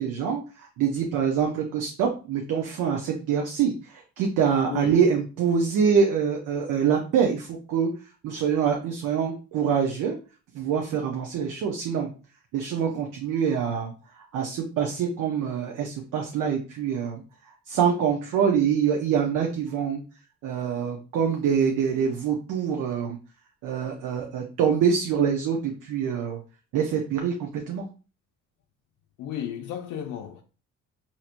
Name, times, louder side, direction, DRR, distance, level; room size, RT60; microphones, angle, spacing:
voice 1, 0.0-7.9 8.2-10.2 10.5-12.1 12.5-13.9 14.3-17.2 17.7-20.0 20.4-23.2 23.6-26.4 26.7-27.9, right 7 dB, 85° right, 0.7 m, -25 dB
voice 2, 4.6-5.0 29.2-30.4, left 9 dB, 85° left, 0.5 m, -33 dB
4.3 x 2.8 x 2.5 m
cardioid pair, 90°, 30 cm